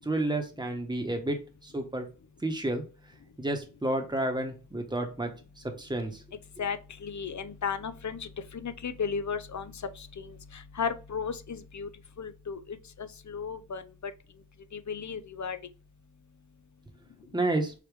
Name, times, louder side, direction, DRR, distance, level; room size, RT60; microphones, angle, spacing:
voice 1, 0.0-2.0 2.4-2.8 3.4-5.3 5.8-6.1 17.3-17.7, right 1 dB, 10° right, 1.1 m, -30 dB
voice 2, 6.6-11.9 12.2-13.8 14.7-15.6, left 6 dB, 55° left, 0.6 m, -35 dB
4.9 x 2.9 x 3.4 m
wide cardioid pair, 60°, 35 cm